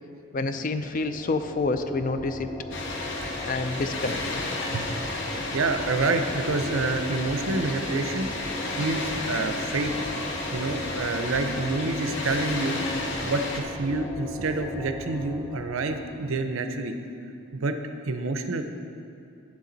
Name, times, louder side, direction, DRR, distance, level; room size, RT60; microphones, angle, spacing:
voice 1, 0.3-2.5 3.4-4.2, left 3 dB, 40° left, 9 dB, 0.4 m, -28 dB
sound 1, 0.8-16.6, left 1 dB, 15° left, 0.8 m, -39 dB
Water, 2.7-13.6, left 2 dB, 55° left, 0.9 m, -32 dB
voice 2, 5.3-8.3 8.7-9.9 10.5-12.8 13.2-17.0 17.5-17.8 18.1-18.6, right 3 dB, 70° right, 7 dB, 0.6 m, -28 dB
10.0 x 7.2 x 4.0 m, 2.6 s
head